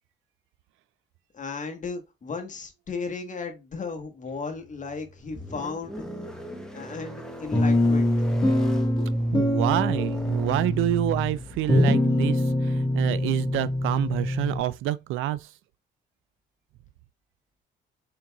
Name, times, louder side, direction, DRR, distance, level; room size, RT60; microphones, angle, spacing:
voice 1, 1.3-6.0 6.7-8.1, left 4 dB, 40° left, 1.3 m, -35 dB
sound 1, 4.5-14.8, left 1 dB, 5° left, 0.9 m, -41 dB
sound 2, 7.5-14.6, left 1 dB, 20° left, 1.3 m, -24 dB
voice 2, 9.3-15.5, right 14 dB, 90° right, 0.4 m, -27 dB
4.5 x 3.8 x 2.3 m
cardioid pair, 90°, 20 cm